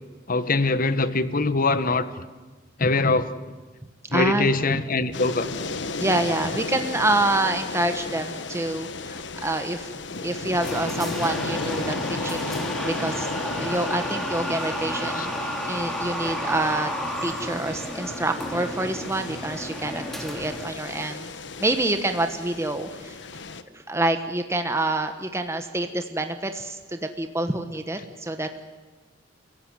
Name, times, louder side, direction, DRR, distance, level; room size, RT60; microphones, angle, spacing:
voice 1, 0.3-2.1 2.8-3.3 4.1-5.5 15.1-15.3, left 3 dB, 50° left, 12 dB, 1.3 m, -22 dB
voice 2, 4.1-4.5 6.0-9.9 10.2-13.3 13.6-16.9 17.2-21.3 21.6-23.2 23.7-28.6, right 2 dB, 15° right, 7 dB, 1.2 m, -27 dB
sound 1, 5.1-23.6, left 3 dB, 65° left, 1.3 m, -34 dB
sound 2, 10.6-20.7, equal, ahead, 3.0 m, -32 dB
30.0 x 16.5 x 9.6 m, 1.3 s
head